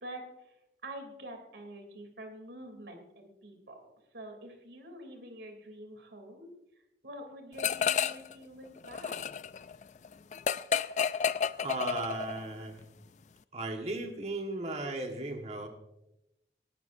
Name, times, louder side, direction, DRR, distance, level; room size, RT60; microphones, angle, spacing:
voice 1, 0.8-6.5 7.0-9.3, right 1 dB, 85° right, 4 dB, 3.1 m, -46 dB
sound 1, 7.6-8.3 8.6-12.5, left 7 dB, 40° left, 0.4 m, -31 dB
voice 2, 11.6-12.8 13.5-15.7, right 2 dB, 40° right, 3 dB, 1.5 m, -36 dB
19.5 x 14.5 x 2.7 m, 0.89 s
head